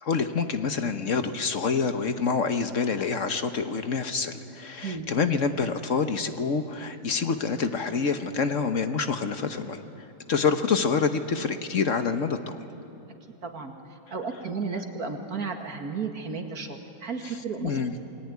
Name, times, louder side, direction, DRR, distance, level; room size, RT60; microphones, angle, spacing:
voice 1, 0.0-9.8 10.3-12.6 17.6-17.9, left 5 dB, 50° left, 8 dB, 1.3 m, -27 dB
voice 2, 13.4-17.8, right 4 dB, 50° right, 4 dB, 2.4 m, -33 dB
28.5 x 20.0 x 9.5 m, 2.8 s
omnidirectional pair, 2.0 m